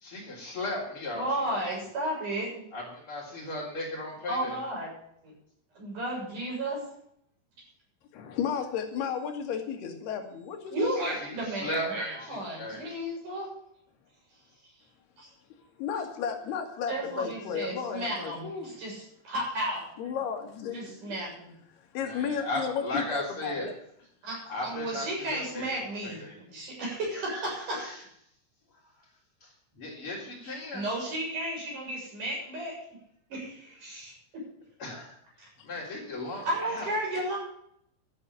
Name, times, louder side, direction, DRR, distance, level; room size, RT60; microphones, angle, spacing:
voice 1, 0.0-1.3 1.5-1.6 2.7-4.5 11.6-12.8 18.4-18.7 22.0-23.7 24.5-25.6 26.0-26.3 29.8-30.8 34.8-35.1 35.6-36.9, left 1 dB, 30° left, -8 dB, 4.2 m, -36 dB
voice 2, 1.1-2.5 4.3-4.9 5.8-6.8 10.7-13.5 15.2-15.3 16.9-19.8 20.7-21.5 24.2-26.2 26.5-28.1 30.4-32.8 33.3-34.1 35.4-35.5 36.4-37.4, right 1 dB, 45° right, -3 dB, 8.6 m, -33 dB
voice 3, 8.2-11.2 15.8-18.5 20.0-21.1 21.9-23.8 36.3-36.5, left 7 dB, 65° left, 4 dB, 3.8 m, -33 dB
13.0 x 9.1 x 8.4 m, 0.71 s
omnidirectional pair, 5.2 m